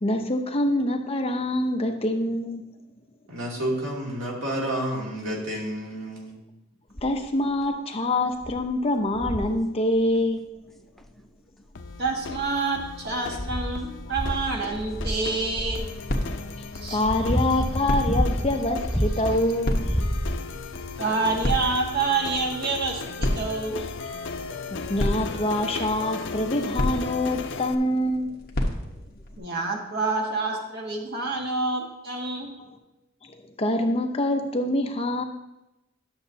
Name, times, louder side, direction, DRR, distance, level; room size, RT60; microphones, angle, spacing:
voice 1, 0.0-2.6 7.0-10.4 16.6-20.0 24.5-28.3 33.2-35.2, left 1 dB, 30° left, 4 dB, 0.7 m, -25 dB
voice 2, 3.3-6.4, right 1 dB, 80° right, -3 dB, 2.5 m, -30 dB
sound 1, 7.0-7.3 7.9-8.0 8.4-8.7 9.1-9.6 11.0-11.1 11.9-12.6 13.1-15.9 16.6-19.4 19.7-20.7 21.5-21.6, equal, ahead, 0.3 m, -29 dB
sound 2, 11.7-27.7, left 4 dB, 65° left, 0.5 m, -37 dB
voice 3, 12.0-15.8 16.7-17.0 21.0-23.8 29.4-32.5, right 3 dB, 55° right, 0 dB, 1.5 m, -27 dB
sound 3, 14.9-29.4, equal, 50° left, 1.1 m, -33 dB
11.5 x 7.0 x 2.8 m, 0.92 s
head